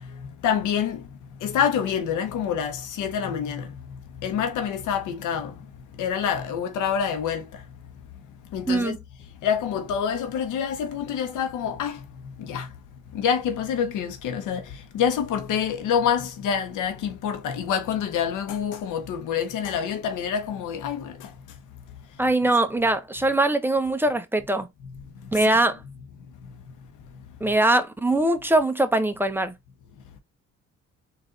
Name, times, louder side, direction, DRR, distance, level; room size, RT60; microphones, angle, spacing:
voice 1, 0.4-1.0 1.4-3.7 4.2-5.5 6.0-7.6 8.5-9.0 9.4-12.0 12.4-12.7 13.1-21.3 25.4-25.6, left 8 dB, 90° left, 1.0 m, -27 dB
voice 2, 8.7-9.0 22.2-24.7 25.3-25.8 27.4-29.5, right 2 dB, 5° right, 0.7 m, -22 dB
4.0 x 2.6 x 3.8 m
cardioid pair, 90°, 30 cm